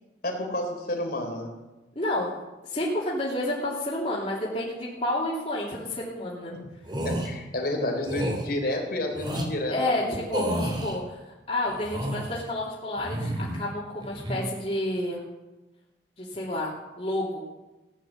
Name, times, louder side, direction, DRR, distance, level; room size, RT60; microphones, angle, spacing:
voice 1, 0.2-1.5 6.5-6.6 7.0-10.1, left 1 dB, 60° left, 2 dB, 3.6 m, -30 dB
voice 2, 1.9-2.3 2.6-6.5 9.7-15.2 16.2-17.4, left 1 dB, 35° left, -6 dB, 2.9 m, -30 dB
sound 1, 6.8-7.3 8.0-8.4 9.1-9.5 10.3-11.0 11.7-12.4 13.0-13.6 14.0-14.4, equal, 25° right, 2.7 m, -30 dB
16.5 x 10.5 x 7.3 m, 1.1 s
head